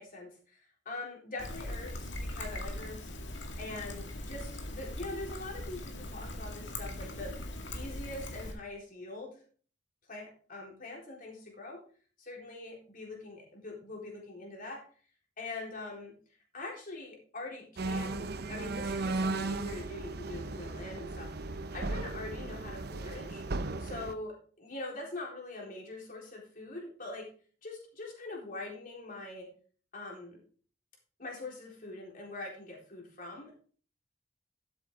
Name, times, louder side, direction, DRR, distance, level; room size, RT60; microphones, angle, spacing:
voice 1, 0.0-3.1 3.6-7.3 7.7-9.4 10.1-11.8 12.2-14.8 15.4-16.1 16.5-23.4 23.8-27.2 27.6-29.5 29.9-30.4 31.2-33.6, left 2 dB, 50° left, -1 dB, 3.9 m, -43 dB
Trickle dribble, 1.4-8.5, left 1 dB, 75° left, 2.1 m, -40 dB
sound 1, 17.8-24.1, right 2 dB, 60° right, 0.7 m, -36 dB
12.0 x 7.9 x 3.7 m, 0.42 s
head